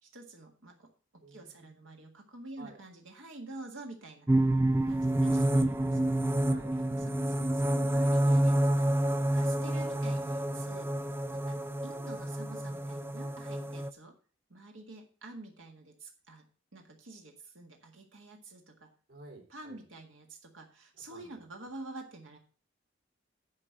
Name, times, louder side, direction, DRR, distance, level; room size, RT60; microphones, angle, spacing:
voice 1, 0.0-4.3 4.8-6.3 7.0-14.1 14.5-16.5 16.7-18.9 19.5-22.4, right 2 dB, 85° right, 2 dB, 1.8 m, -48 dB
voice 2, 1.2-1.7 2.6-2.8 5.2-6.7 11.3-11.6 19.1-19.8 21.1-21.4, right 2 dB, 70° right, 0 dB, 3.9 m, -53 dB
sound 1, 4.3-13.9, right 1 dB, 10° right, 0.4 m, -28 dB
9.8 x 5.0 x 7.1 m, 0.39 s
head